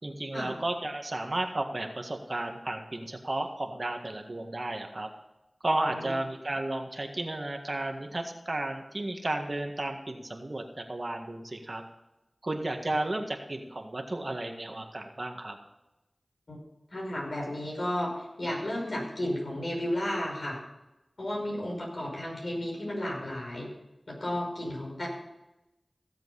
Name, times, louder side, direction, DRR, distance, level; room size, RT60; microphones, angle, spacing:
voice 1, 0.0-5.1 5.6-11.8 12.4-15.6, right 2 dB, 50° right, 4 dB, 1.7 m, -33 dB
voice 2, 16.5-20.6 21.2-23.7 24.1-25.1, left 1 dB, 70° left, -2 dB, 5.6 m, -33 dB
16.0 x 7.6 x 5.6 m, 0.95 s
wide cardioid pair, 50°, 0 cm